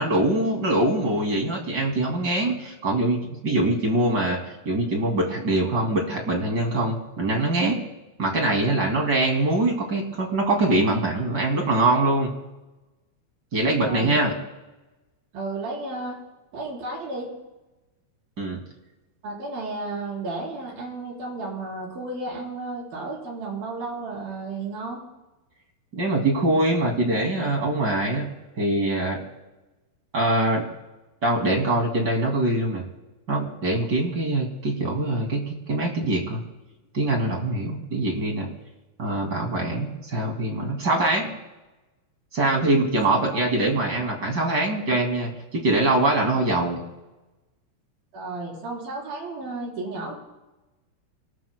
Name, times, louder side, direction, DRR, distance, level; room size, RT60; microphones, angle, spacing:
voice 1, 0.0-4.4 4.6-7.8 8.2-12.3 13.5-14.3 18.4-18.6 25.9-28.3 28.6-29.2 30.1-30.6 31.2-32.8 33.3-36.4 36.9-38.5 39.0-41.3 42.3-46.8, right 2 dB, 30° right, 0 dB, 2.3 m, -23 dB
voice 2, 13.9-14.2 15.3-16.2 16.5-17.3 19.2-25.0 43.1-43.6 48.1-50.2, right 2 dB, 60° right, -2 dB, 5.7 m, -33 dB
28.5 x 19.0 x 2.2 m, 1.0 s
omnidirectional pair, 4.9 m